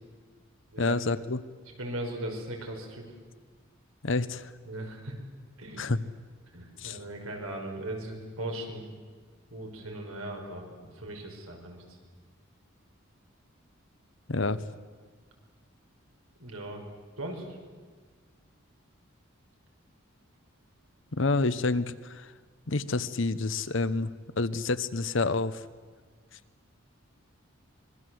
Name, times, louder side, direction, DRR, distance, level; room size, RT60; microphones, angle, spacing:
voice 1, 0.8-1.4 4.0-4.5 5.8-6.0 6.8-7.0 14.3-14.6 21.1-22.3 22.7-25.7 26.3-26.4, left 3 dB, 65° left, 14 dB, 1.0 m, -28 dB
voice 2, 1.8-3.1 4.7-5.2 5.6-5.8 6.5-8.9 9.5-11.8 16.4-16.8 17.2-17.6, right 1 dB, 85° right, 2 dB, 5.7 m, -38 dB
25.5 x 22.5 x 7.9 m, 1.5 s
head